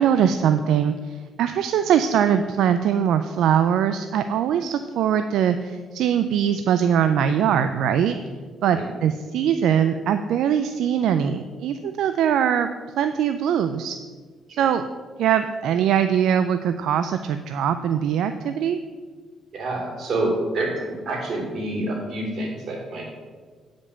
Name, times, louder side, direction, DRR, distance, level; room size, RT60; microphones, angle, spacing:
voice 1, 0.0-8.2 8.6-12.7 13.0-14.0 14.5-14.8 15.2-18.8, right 8 dB, 80° right, 9 dB, 0.4 m, -22 dB
voice 2, 19.5-23.1, right 2 dB, 60° right, -1 dB, 3.1 m, -28 dB
8.6 x 5.2 x 6.9 m, 1.5 s
cardioid pair, 90°, 0 cm